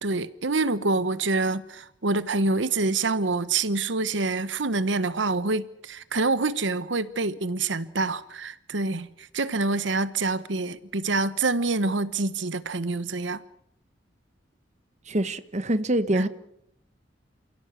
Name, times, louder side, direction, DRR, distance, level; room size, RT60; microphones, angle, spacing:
voice 1, 0.0-13.4 16.1-16.2, right 3 dB, 80° right, 1.1 m, -26 dB
voice 2, 15.1-16.3, right 1 dB, 40° right, 1.2 m, -25 dB
28.5 x 17.0 x 8.3 m
head